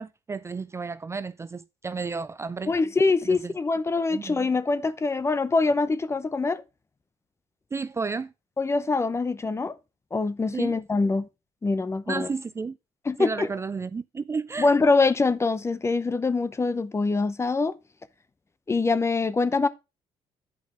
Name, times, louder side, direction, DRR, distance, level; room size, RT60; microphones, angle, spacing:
voice 1, 0.0-2.7 3.2-3.5 4.1-4.4 7.7-8.3 10.5-10.7 12.1-12.8 13.2-14.7, right 4 dB, 25° right, 0.4 m, -32 dB
voice 2, 2.7-6.6 8.6-9.7 10.1-11.3 11.6-12.3 13.1-13.5 14.6-17.8 18.7-19.7, left 3 dB, 25° left, 0.7 m, -24 dB
8.5 x 5.2 x 4.9 m
cardioid pair, 90°, 12 cm